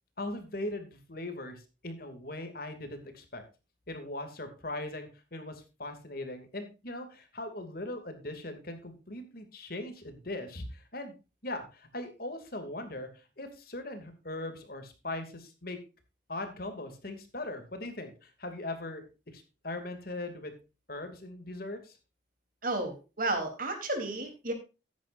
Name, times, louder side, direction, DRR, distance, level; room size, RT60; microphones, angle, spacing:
voice 1, 0.2-3.4 3.9-11.1 11.4-15.8 16.3-19.0 19.3-20.5 20.9-21.9, left 2 dB, 50° left, 7 dB, 2.7 m, -40 dB
voice 2, 22.6-24.5, right 2 dB, 45° right, 5 dB, 3.6 m, -32 dB
15.0 x 10.5 x 2.6 m, 0.31 s
head